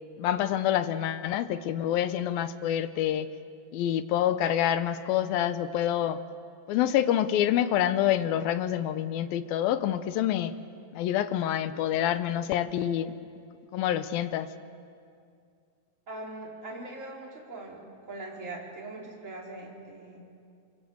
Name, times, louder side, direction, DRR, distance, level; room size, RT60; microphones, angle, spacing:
voice 1, 0.2-3.3 3.7-6.2 6.7-10.5 10.9-13.1 13.7-14.5, left 11 dB, 85° left, 12 dB, 2.7 m, -27 dB
voice 2, 16.1-17.8 18.1-20.2, right 2 dB, 20° right, -3 dB, 4.6 m, -41 dB
28.0 x 25.5 x 8.0 m, 2.4 s
omnidirectional pair, 4.1 m